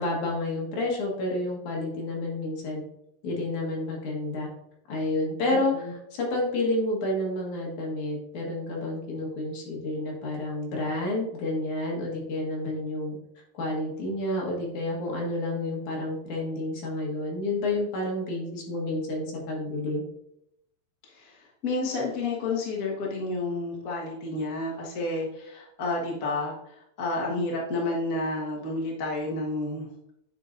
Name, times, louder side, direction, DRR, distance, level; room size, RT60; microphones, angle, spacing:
voice 1, 0.0-2.8 3.2-4.5 4.9-13.2 13.5-20.0, left 2 dB, 65° left, -1 dB, 2.7 m, -30 dB
voice 2, 5.5-5.9 21.1-21.4 21.6-29.9, left 2 dB, 45° left, -3 dB, 1.1 m, -30 dB
9.3 x 4.8 x 2.6 m, 0.79 s
omnidirectional pair, 3.8 m